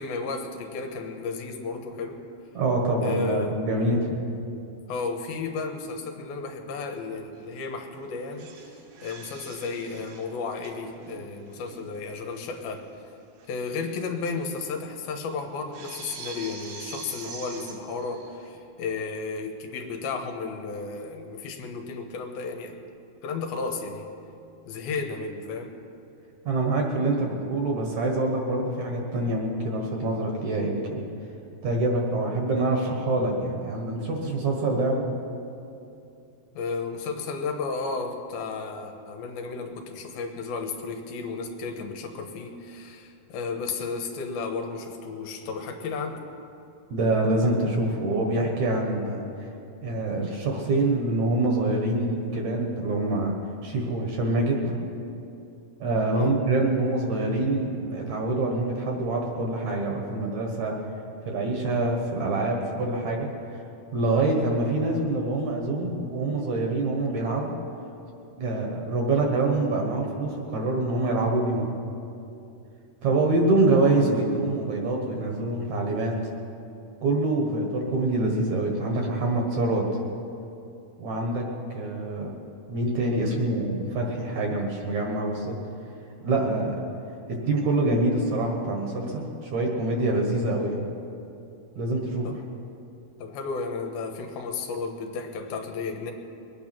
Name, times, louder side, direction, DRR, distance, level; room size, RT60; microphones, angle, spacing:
voice 1, 0.0-2.2 3.0-3.6 4.9-12.9 13.5-22.8 23.2-24.1 24.7-25.8 36.5-46.2 56.1-56.4 92.2-92.4 93.2-96.1, left 4 dB, 75° left, 4 dB, 2.9 m, -33 dB
voice 2, 2.5-4.3 26.4-31.0 31.6-35.1 46.9-49.5 49.8-53.3 53.6-54.7 55.8-60.8 61.2-63.6 63.9-67.5 68.4-71.7 73.0-76.1 77.0-79.8 81.0-81.5 81.7-82.3 82.7-85.6 86.2-86.8 87.3-90.8 91.8-92.4, right 2 dB, 60° right, 1 dB, 2.3 m, -25 dB
sound 1, 7.3-7.6 7.9-12.5 12.7-12.8 13.4-13.5 13.8-18.6, right 5 dB, 75° right, 3.2 m, -45 dB
22.0 x 9.4 x 6.0 m, 2.7 s
omnidirectional pair, 4.4 m